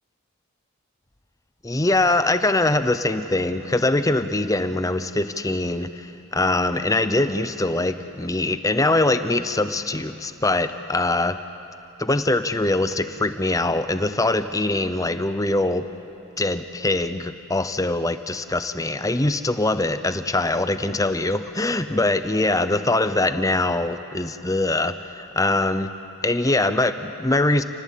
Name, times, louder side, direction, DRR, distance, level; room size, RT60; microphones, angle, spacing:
voice 1, 1.6-11.4 12.0-15.8 16.4-25.9 26.2-27.6, left 2 dB, 15° left, 11 dB, 0.7 m, -23 dB
28.5 x 19.0 x 8.4 m, 3.0 s
head